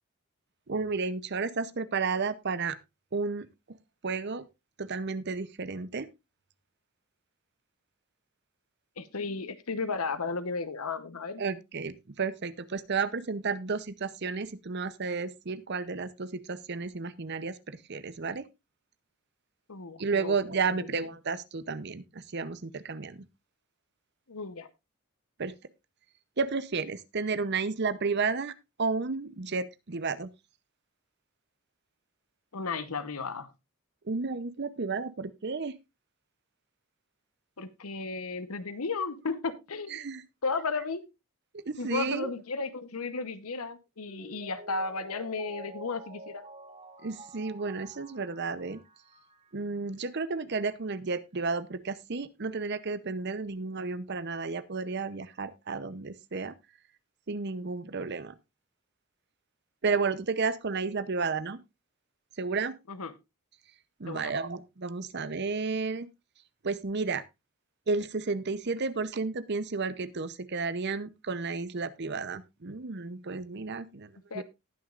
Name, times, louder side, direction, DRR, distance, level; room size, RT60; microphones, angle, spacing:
voice 1, 0.7-2.8 3.1-3.8 4.0-4.5 4.8-6.1 11.4-18.5 20.0-23.2 25.4-25.5 26.4-28.5 28.8-30.3 34.0-35.8 39.9-40.2 41.5-42.3 47.0-48.8 49.5-56.5 57.3-58.3 59.8-61.6 62.4-62.8 64.0-66.1 66.6-67.2 67.9-74.4, right 4 dB, 50° right, 15 dB, 0.7 m, -32 dB
voice 2, 9.0-11.4 19.7-20.3 20.7-20.9 24.3-24.7 32.5-33.5 37.6-40.1 40.4-41.1 41.8-46.4 62.9-63.1 64.1-64.3 74.3-74.4, left 4 dB, 80° left, 12 dB, 1.0 m, -34 dB
Mallet percussion, 44.1-49.6 49.9-50.0, right 2 dB, 25° right, 1.2 m, -48 dB
19.0 x 6.3 x 2.5 m, 0.23 s
head